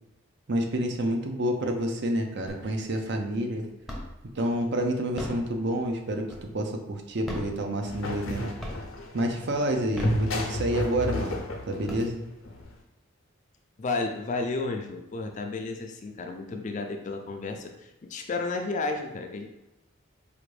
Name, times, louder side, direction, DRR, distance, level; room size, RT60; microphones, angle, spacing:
voice 1, 0.5-3.7 4.3-8.5 9.1-11.4 11.7-12.2, right 1 dB, 55° right, 4 dB, 0.6 m, -28 dB
sound 1, 2.5-3.0 3.3-4.3 5.0-6.7 7.2-8.3 8.6-9.1 9.7-10.8 11.3-11.4 11.7-12.6, equal, ahead, 0.7 m, -38 dB
sound 2, 7.8-12.7, left 1 dB, 70° left, 0.7 m, -32 dB
voice 2, 13.8-19.5, left 3 dB, 35° left, 5 dB, 0.4 m, -32 dB
4.9 x 2.5 x 3.2 m, 0.97 s
head